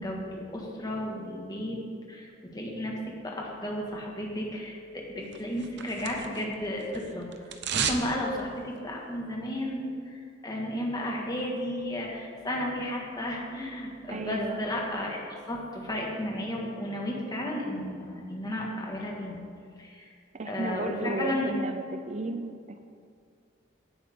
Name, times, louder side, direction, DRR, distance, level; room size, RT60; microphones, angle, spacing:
voice 1, 0.0-1.8 2.1-7.3 7.7-9.8 10.1-19.4 19.8-20.1 20.5-21.5, left 1 dB, 20° left, -2 dB, 1.8 m, -33 dB
sound 1, 5.3-6.6 6.8-8.1 8.4-8.5, right 7 dB, 65° right, 0.8 m, -32 dB
voice 2, 14.1-14.6 20.3-22.8, right 2 dB, 35° right, 7 dB, 0.5 m, -34 dB
16.5 x 8.2 x 3.7 m, 2.3 s
head